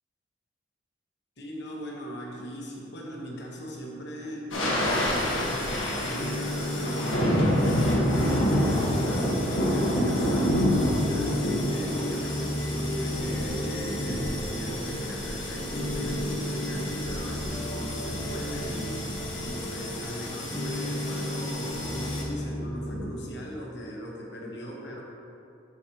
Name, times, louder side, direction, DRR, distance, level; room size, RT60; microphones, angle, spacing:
voice 1, 1.4-25.0, equal, 60° left, -2 dB, 1.2 m, -39 dB
sound 1, 4.5-22.2, left 1 dB, 80° left, 1.5 m, -28 dB
sound 2, 6.2-23.0, equal, 25° left, 1.2 m, -34 dB
11.0 x 5.0 x 3.0 m, 2.7 s
head